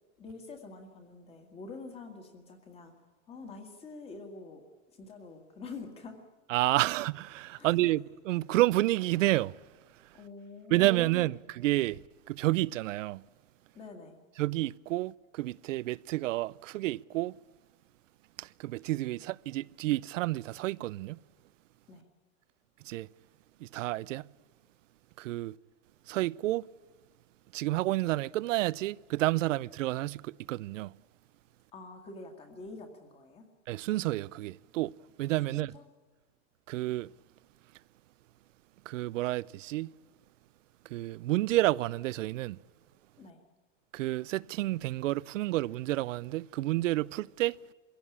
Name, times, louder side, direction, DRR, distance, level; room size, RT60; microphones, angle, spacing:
voice 1, 0.2-2.9 3.3-4.6 5.0-6.2 7.6-7.7 10.1-11.4 13.7-14.2 21.9-22.0 31.7-33.5 35.5-35.8 43.2-43.4, left 3 dB, 15° left, 1.9 m, -46 dB
voice 2, 6.5-9.5 10.7-12.0 12.3-13.2 14.4-17.3 18.4-21.2 22.9-23.1 23.6-24.3 25.2-25.6 26.1-26.7 27.5-30.9 33.7-34.9 35.2-35.8 36.7-37.1 38.9-39.9 40.9-42.6 43.9-47.6, right 17 dB, 90° right, 0.6 m, -30 dB
23.5 x 16.5 x 8.6 m
supercardioid pair, 175°, 37 cm